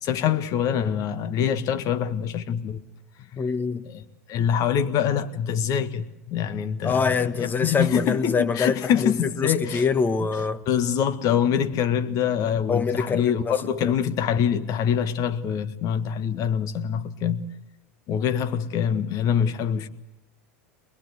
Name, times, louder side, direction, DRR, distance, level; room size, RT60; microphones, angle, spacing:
voice 1, 0.0-2.8 3.8-4.0 4.3-9.9 10.7-17.5 18.1-19.9, left 8 dB, 50° left, 1.7 m, -25 dB
voice 2, 3.4-3.8 6.8-10.6 12.7-13.9, left 5 dB, 25° left, 1.3 m, -25 dB
23.5 x 20.5 x 8.1 m
hypercardioid pair, 95°, 8 cm